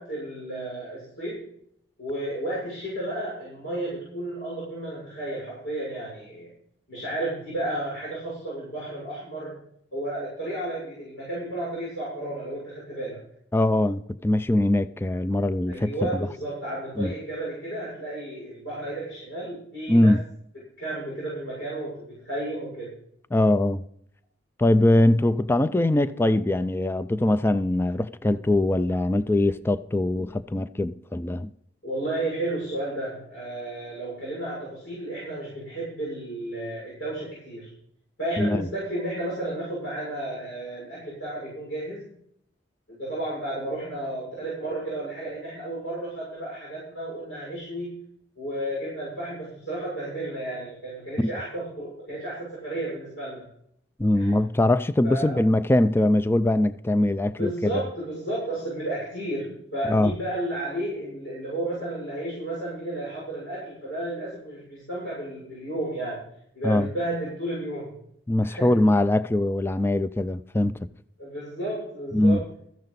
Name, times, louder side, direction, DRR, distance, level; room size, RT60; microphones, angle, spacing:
voice 1, 0.0-1.5 2.0-6.5 6.9-9.6 9.9-13.2 15.7-20.1 20.8-22.9 31.8-37.7 38.2-42.1 42.9-48.0 48.4-53.5 54.1-54.3 55.0-55.4 57.4-66.2 66.5-67.9 68.4-68.7 71.2-72.5, right 1 dB, 90° left, 6.7 m, -32 dB
voice 2, 13.5-16.3 17.0-17.1 19.9-20.2 23.3-23.8 24.6-31.5 38.4-38.7 51.2-51.3 54.0-57.8 59.9-60.1 66.6-66.9 68.3-70.8 72.1-72.4, left 1 dB, 15° left, 0.3 m, -22 dB
14.5 x 10.5 x 4.1 m
head